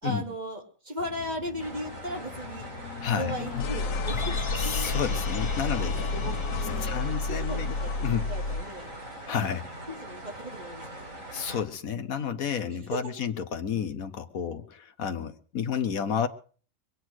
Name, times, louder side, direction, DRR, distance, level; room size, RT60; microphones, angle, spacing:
voice 1, 0.0-2.7 3.1-4.5 5.8-5.9 6.2-9.0 9.9-11.2 12.9-13.0, right 1 dB, 30° right, 0 dB, 3.4 m, -37 dB
sound 1, 1.0-8.8, left 3 dB, 75° left, 1.3 m, -32 dB
sound 2, 1.6-11.6, right 1 dB, 70° right, 5.1 m, -42 dB
voice 2, 3.0-3.3 4.6-6.0 6.8-7.8 8.0-8.3 9.3-9.7 11.3-16.3, left 7 dB, 90° left, 8 dB, 1.6 m, -31 dB
sound 3, 4.1-8.3 8.6-8.7, left 4 dB, 25° left, 1.1 m, -40 dB
22.5 x 9.2 x 6.4 m, 0.42 s
omnidirectional pair, 1.4 m